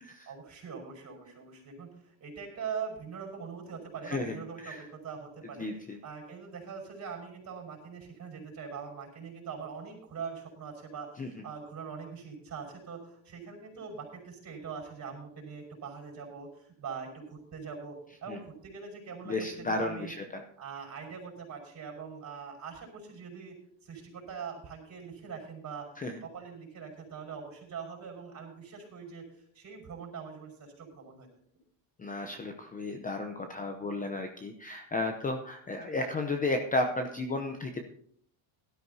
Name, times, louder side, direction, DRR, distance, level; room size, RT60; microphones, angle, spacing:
voice 1, 0.3-20.1 20.6-23.6 23.8-25.9 26.2-31.3 35.9-36.0, right 6 dB, 35° right, 1 dB, 5.3 m, -42 dB
voice 2, 4.1-4.4 4.6-4.8 5.6-6.0 11.2-11.3 18.3-18.4 19.3-20.4 26.0-26.2 32.0-37.8, left 2 dB, 15° left, 5 dB, 0.7 m, -33 dB
18.0 x 12.5 x 2.8 m, 0.64 s
cardioid pair, 150°, 49 cm